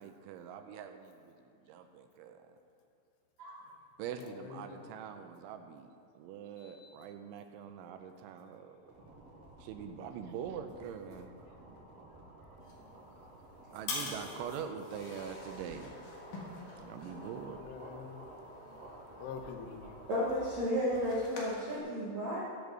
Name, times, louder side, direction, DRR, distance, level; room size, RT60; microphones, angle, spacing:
voice 1, 0.0-2.4 4.0-5.9 6.2-8.9 9.6-11.3 13.7-16.0 16.8-17.7, right 7 dB, 85° right, 6 dB, 3.0 m, -44 dB
voice 2, 4.2-4.8 6.6-6.9 17.6-18.2 19.2-20.0, left 6 dB, 85° left, 5 dB, 3.4 m, -46 dB
sound 1, 8.8-20.6, right 1 dB, 45° right, 2.4 m, -52 dB
sound 2, 12.6-21.8, left 3 dB, 60° left, 2.5 m, -47 dB
voice 3, 20.1-22.4, equal, 65° right, -8 dB, 1.8 m, -33 dB
15.5 x 5.2 x 6.1 m, 2.8 s
omnidirectional pair, 5.5 m